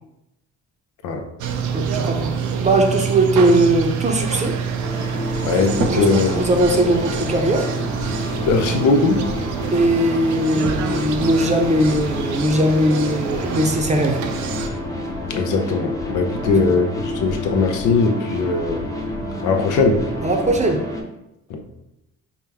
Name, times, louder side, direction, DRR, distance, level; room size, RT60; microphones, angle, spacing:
sound 1, 1.4-14.7, right 6 dB, 75° right, 0.5 m, -27 dB
voice 1, 1.7-2.3 2.6-4.6 5.9-7.7 9.7-14.2 16.4-16.7 20.2-20.8, right 1 dB, 25° right, 2 dB, 0.6 m, -19 dB
sound 2, 4.8-21.0, left 1 dB, 10° left, 0.7 m, -29 dB
voice 2, 5.4-6.3 8.5-9.2 15.3-18.9 19.4-20.0 21.5-21.6, left 4 dB, 80° left, 5 dB, 0.6 m, -19 dB
4.6 x 2.2 x 3.4 m, 0.90 s
cardioid pair, 90°, 30 cm